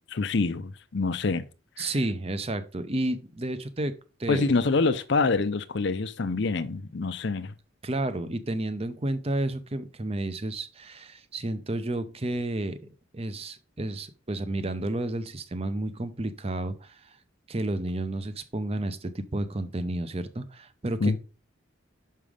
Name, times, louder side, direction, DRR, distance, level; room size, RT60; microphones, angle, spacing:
voice 1, 0.1-1.4 1.8-1.9 4.3-7.5 21.0-21.2, left 3 dB, 55° left, 0.6 m, -26 dB
voice 2, 1.8-3.9 4.2-4.5 7.8-12.9 13.1-17.2 17.5-21.2, right 1 dB, 30° right, 0.6 m, -31 dB
6.1 x 5.5 x 4.9 m
head